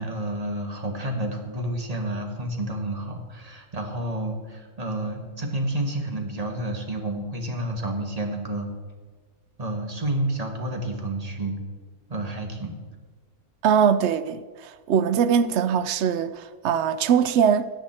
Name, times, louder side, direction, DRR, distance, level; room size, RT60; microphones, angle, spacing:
voice 1, 0.0-8.7 9.6-11.6 12.1-12.7, right 1 dB, 25° right, 1.4 m, -30 dB
voice 2, 13.6-17.7, right 7 dB, 65° right, 0.7 m, -22 dB
14.0 x 9.0 x 4.3 m
omnidirectional pair, 1.6 m